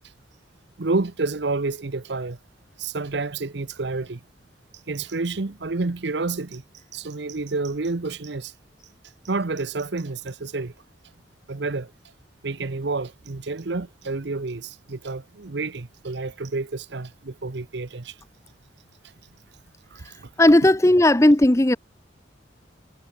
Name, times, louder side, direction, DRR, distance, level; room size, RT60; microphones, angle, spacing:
voice 1, 0.8-2.4 2.8-4.2 4.9-6.6 6.9-8.5 9.2-10.7 11.5-11.9 12.4-18.2 19.9-20.3, right 3 dB, 65° right, 0.8 m, -29 dB
voice 2, 20.4-21.8, left 1 dB, 15° left, 0.6 m, -16 dB
head